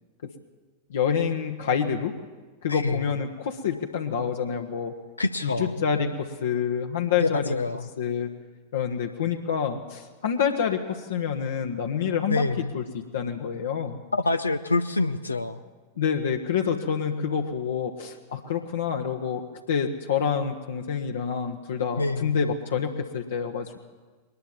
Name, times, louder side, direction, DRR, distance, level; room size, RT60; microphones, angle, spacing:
voice 1, 0.9-2.2 2.6-5.0 5.4-7.5 8.0-8.3 8.7-14.0 16.0-23.8, left 7 dB, 60° left, 3 dB, 1.2 m, -27 dB
voice 2, 2.7-3.1 5.2-5.8 7.2-7.9 12.3-12.7 14.1-15.6 22.0-22.4, left 3 dB, 80° left, 9 dB, 0.7 m, -26 dB
21.5 x 20.0 x 7.3 m, 1.3 s
figure-of-eight pair, 90°, 0 cm